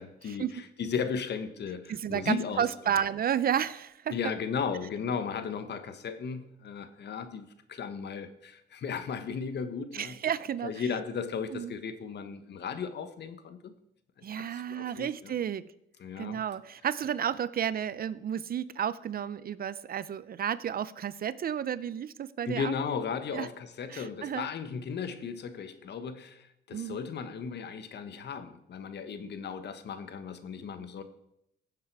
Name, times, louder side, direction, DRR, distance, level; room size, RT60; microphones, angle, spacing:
voice 1, 0.0-3.0 4.1-10.2 10.6-13.7 14.3-15.3 16.0-16.4 22.5-31.0, left 6 dB, 60° left, 10 dB, 1.3 m, -36 dB
voice 2, 1.9-4.1 9.9-10.7 11.5-11.7 14.2-15.7 16.2-22.7 23.3-23.5 23.9-24.5 26.7-27.0, right 9 dB, 50° right, 17 dB, 0.5 m, -32 dB
16.0 x 7.4 x 4.7 m, 0.81 s
cardioid pair, 90°, 20 cm